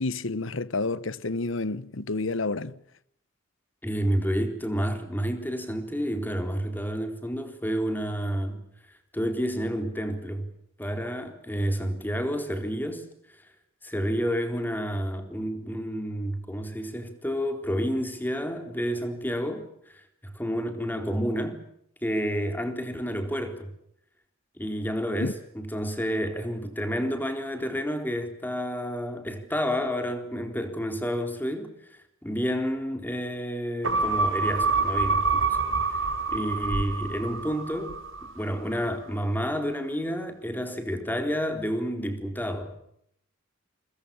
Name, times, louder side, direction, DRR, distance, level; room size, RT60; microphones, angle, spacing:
voice 1, 0.0-2.8 25.2-25.3, left 3 dB, 75° left, 1.1 m, -29 dB
voice 2, 3.8-8.6 9.1-10.5 10.8-13.1 13.8-20.0 20.3-21.6 22.0-23.7 24.6-31.7 32.2-35.5 35.9-36.0 36.3-37.9 38.2-42.8, equal, 10° left, 4.0 m, -30 dB
sound 1, 33.8-38.5 38.9-39.0, right 4 dB, 75° right, 4.3 m, -27 dB
28.5 x 23.0 x 7.1 m
head